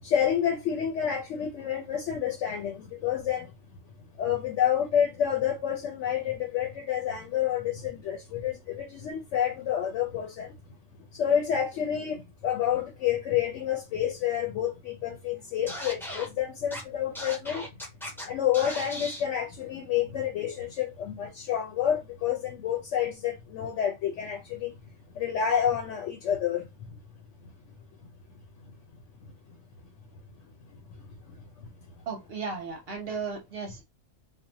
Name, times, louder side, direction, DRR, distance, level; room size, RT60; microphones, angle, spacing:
voice 1, 0.0-3.5 4.2-10.5 11.1-17.7 18.3-24.7 25.1-27.0 29.5-29.6 30.4-31.7, left 9 dB, 70° left, 0.9 m, -29 dB
Scratching (performance technique), 15.7-16.3 16.7-16.8 17.1-18.2 18.5-19.2, equal, 5° left, 0.5 m, -37 dB
voice 2, 32.1-33.8, right 5 dB, 55° right, 0.8 m, -35 dB
2.5 x 2.1 x 2.7 m
omnidirectional pair, 1.4 m